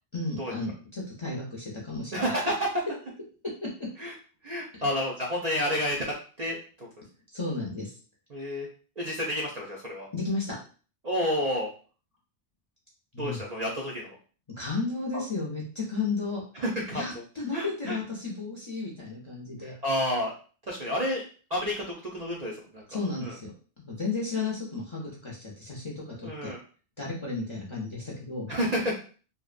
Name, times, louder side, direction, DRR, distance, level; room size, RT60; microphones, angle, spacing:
voice 1, 0.1-2.2 3.6-3.9 4.7-4.9 7.3-7.9 10.1-10.6 13.1-13.4 14.6-16.4 16.9-19.7 22.9-23.5 23.8-26.5 27.0-28.5, left 3 dB, 35° left, -4 dB, 0.5 m, -33 dB
voice 2, 2.1-2.8 4.0-4.1 4.4-6.0 6.4-6.9 8.3-8.7 9.0-10.1 11.0-11.7 13.2-14.1 15.1-15.2 16.5-17.0 17.5-18.0 19.6-20.3 20.7-21.2 21.5-23.3 26.2-26.6 28.5-28.9, equal, 50° right, -3 dB, 0.5 m, -30 dB
2.7 x 2.1 x 2.4 m, 0.39 s
omnidirectional pair, 1.2 m